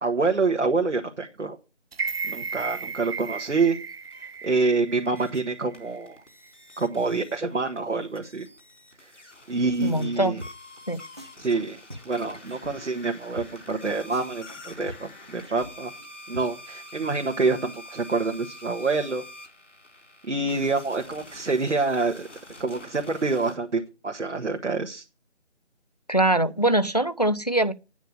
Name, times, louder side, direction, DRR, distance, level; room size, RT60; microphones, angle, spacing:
voice 1, 0.0-1.6 2.3-3.8 4.4-6.2 6.8-8.5 9.0-9.1 9.5-10.4 11.4-11.8 12.0-15.9 16.3-19.2 20.3-22.3 22.6-25.0, right 3 dB, 80° right, 1.6 m, -26 dB
sound 1, 1.9-6.0 6.4-6.5, right 5 dB, 60° right, 0.5 m, -35 dB
sound 2, 3.9-4.5 5.0-7.4 7.8-23.6, left 1 dB, 90° left, 3.8 m, -47 dB
sound 3, 9.6-10.1 10.4-10.8 11.1-12.7 13.0-13.1 13.4-13.5 13.7-13.8 14.1-16.1 16.3-16.5, equal, 25° right, 0.9 m, -43 dB
voice 2, 9.8-10.4 10.9-11.0 26.1-27.7, right 1 dB, 35° left, 0.5 m, -22 dB
9.2 x 6.4 x 7.4 m
figure-of-eight pair, 170°, 35 cm